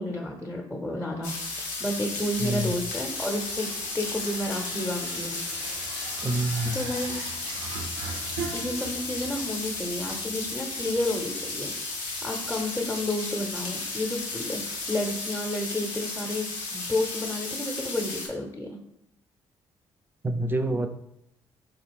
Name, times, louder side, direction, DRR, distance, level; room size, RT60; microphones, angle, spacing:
voice 1, 0.0-3.7 3.9-5.4 6.7-7.1 8.5-11.7 12.2-18.8, left 1 dB, 10° left, 1 dB, 0.7 m, -31 dB
sound 1, 1.2-18.3, left 3 dB, 80° left, 0.7 m, -34 dB
sound 2, 1.8-15.1, right 4 dB, 85° right, 0.5 m, -43 dB
voice 2, 2.4-2.7 6.2-6.8 20.2-20.9, right 1 dB, 15° right, 8 dB, 0.4 m, -26 dB
3.6 x 2.4 x 3.3 m, 0.78 s
hypercardioid pair, 45°, 13 cm